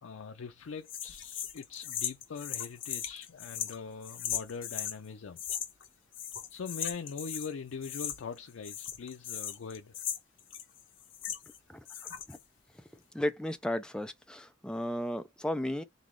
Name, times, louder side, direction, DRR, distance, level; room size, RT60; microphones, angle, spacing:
voice 1, 0.0-5.4 6.5-10.0, left 5 dB, 85° left, 0.5 m, -42 dB
sound 1, 0.9-5.0 5.4-5.9 6.1-7.5 7.8-8.4 8.6-11.6 11.9-12.4, left 10 dB, 70° left, 1.0 m, -38 dB
voice 2, 13.1-15.8, left 1 dB, 5° left, 0.4 m, -34 dB
4.1 x 3.6 x 3.1 m
head